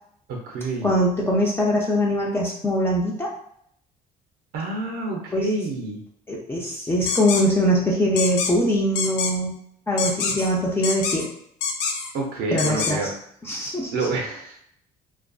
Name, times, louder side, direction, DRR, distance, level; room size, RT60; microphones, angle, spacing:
voice 1, 0.3-0.9 4.5-6.0 12.1-13.1 13.9-14.6, right 3 dB, 70° right, 0 dB, 0.5 m, -28 dB
voice 2, 0.8-3.3 5.3-5.5 6.3-9.6 9.9-11.3 12.5-13.1 13.4-13.9, equal, 15° left, -4 dB, 0.4 m, -22 dB
sound 1, 7.1-7.4 8.2-8.5 8.9-9.3 10.0-10.5 10.8-11.3 11.6-12.1 12.6-12.9, left 5 dB, 90° left, 0.5 m, -25 dB
2.4 x 2.2 x 2.3 m, 0.69 s
cardioid pair, 110°, 17 cm